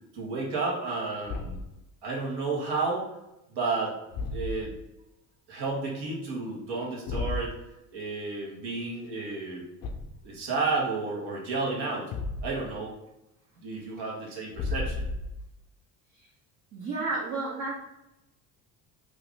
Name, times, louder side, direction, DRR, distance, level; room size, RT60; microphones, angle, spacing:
voice 1, 0.1-1.6 2.0-3.1 3.5-3.9 4.3-4.8 5.5-7.5 7.9-9.6 10.2-12.1 12.4-12.9 13.6-15.1, right 3 dB, 60° right, -3 dB, 1.4 m, -31 dB
Thump thud, 1.2-1.8 4.1-4.8 7.1-7.5 9.8-10.3 12.1-12.7 14.5-15.5, left 3 dB, 55° left, 0.6 m, -33 dB
voice 2, 16.7-17.7, right 3 dB, 40° right, -5 dB, 1.0 m, -32 dB
3.0 x 2.5 x 3.7 m, 0.90 s
supercardioid pair, 75°, 44 cm